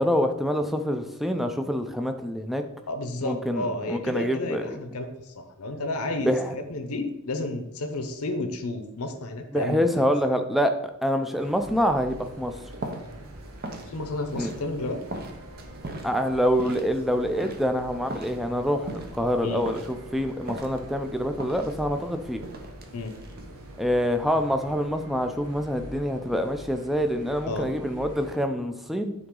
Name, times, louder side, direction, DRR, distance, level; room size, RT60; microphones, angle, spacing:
voice 1, 0.0-2.6 3.2-4.8 6.2-6.5 9.5-10.7 11.0-12.6 14.4-14.5 16.0-22.4 23.8-29.1, equal, ahead, 6 dB, 0.4 m, -26 dB
voice 2, 2.9-10.1 13.9-15.0 19.4-19.6 22.9-23.1 27.5-27.7, left 2 dB, 80° left, 6 dB, 0.7 m, -32 dB
sound 1, 11.4-28.4, right 1 dB, 80° right, 1.0 m, -45 dB
sound 2, 11.6-23.9, right 1 dB, 45° right, 0.8 m, -41 dB
9.8 x 4.0 x 3.8 m, 0.90 s
head